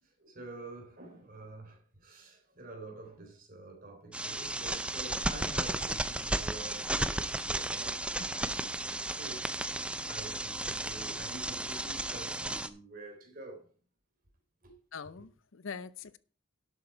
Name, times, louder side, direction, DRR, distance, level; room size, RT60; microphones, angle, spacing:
voice 1, 0.0-9.4 10.1-13.7 14.6-14.7, right 2 dB, 40° right, 3.6 m, -48 dB
sound 1, 4.1-12.7, right 1 dB, 5° right, 0.5 m, -34 dB
voice 2, 14.9-16.2, left 5 dB, 75° left, 0.7 m, -43 dB
11.5 x 8.2 x 4.4 m
head